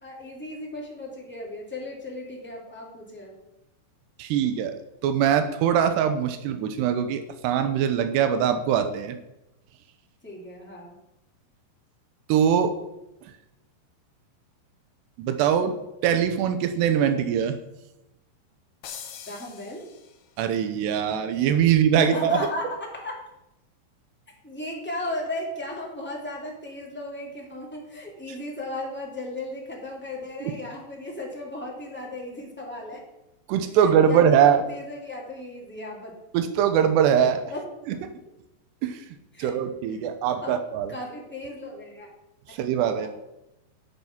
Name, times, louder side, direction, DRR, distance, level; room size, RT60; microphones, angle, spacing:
voice 1, 0.0-3.4 10.2-11.0 19.2-19.8 22.0-23.1 24.4-33.0 33.8-36.1 37.5-37.6 39.3-39.5 40.4-40.6 40.9-42.1 42.5-42.6, left 1 dB, 5° left, -3 dB, 1.4 m, -35 dB
voice 2, 4.2-4.8 5.0-9.2 12.3-12.7 15.2-15.7 16.0-17.6 20.4-22.4 33.5-34.6 36.3-37.4 38.8-39.0 39.4-40.9 42.6-43.1, right 8 dB, 85° right, 8 dB, 3.0 m, -22 dB
sound 1, 18.8-20.5, left 8 dB, 65° left, 2.0 m, -43 dB
11.5 x 7.7 x 5.8 m, 0.91 s
omnidirectional pair, 4.7 m